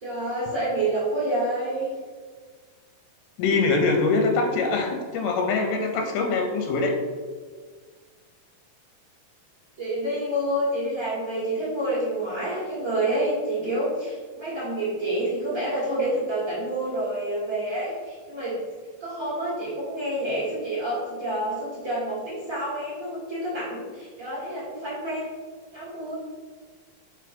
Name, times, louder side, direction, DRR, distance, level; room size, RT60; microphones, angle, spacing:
voice 1, 0.0-1.9 9.8-18.6 19.0-25.3 25.7-26.1, right 1 dB, 40° right, -9 dB, 1.1 m, -28 dB
voice 2, 3.4-7.0, left 3 dB, 85° left, 4 dB, 2.8 m, -23 dB
5.9 x 3.3 x 5.1 m, 1.5 s
omnidirectional pair, 4.5 m